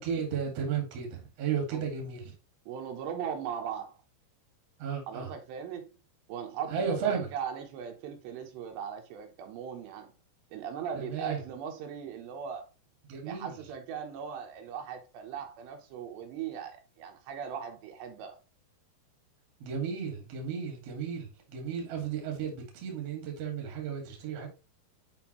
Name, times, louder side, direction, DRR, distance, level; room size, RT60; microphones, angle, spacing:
voice 1, 0.0-2.3 4.8-5.3 6.7-7.3 11.0-11.4 13.1-13.5 19.6-24.5, right 7 dB, 45° right, 2.3 m, -34 dB
voice 2, 2.7-4.0 5.1-5.9 6.3-10.1 10.5-12.7 13.3-18.4, right 8 dB, 80° right, 3.2 m, -39 dB
7.3 x 5.3 x 3.0 m
omnidirectional pair, 5.0 m